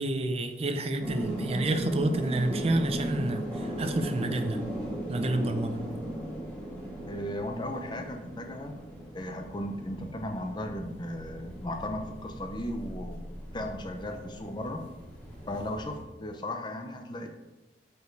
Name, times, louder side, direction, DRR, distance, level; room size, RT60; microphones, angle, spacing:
voice 1, 0.0-4.6 5.1-5.8, right 1 dB, 35° right, 7 dB, 0.6 m, -29 dB
sound 1, 1.0-16.0, right 1 dB, 10° left, 2.1 m, -37 dB
voice 2, 7.1-8.7 9.1-14.8 15.5-17.3, left 1 dB, 25° left, 5 dB, 0.6 m, -36 dB
7.0 x 5.0 x 4.6 m, 1.1 s
head